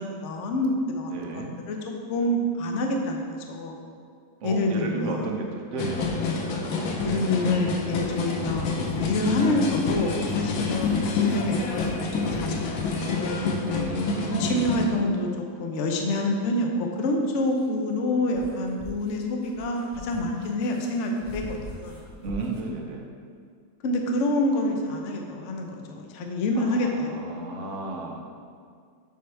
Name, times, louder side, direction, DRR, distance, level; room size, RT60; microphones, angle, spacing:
voice 1, 0.0-1.8 2.1-3.8 4.4-5.3 6.2-6.4 7.0-13.5 14.3-15.3 15.6-22.0 23.8-27.1, left 1 dB, 60° left, 2 dB, 0.7 m, -27 dB
voice 2, 1.1-1.5 4.4-7.4 13.7-14.5 22.2-23.1 26.5-28.2, right 3 dB, 55° right, 0 dB, 0.8 m, -33 dB
sound 1, 5.8-14.9, left 4 dB, 85° left, 1.5 m, -28 dB
sound 2, 8.0-12.5 14.8-14.9 16.9-22.7, left 1 dB, 20° left, 0.6 m, -46 dB
6.8 x 6.0 x 3.3 m, 2.1 s
omnidirectional pair, 2.0 m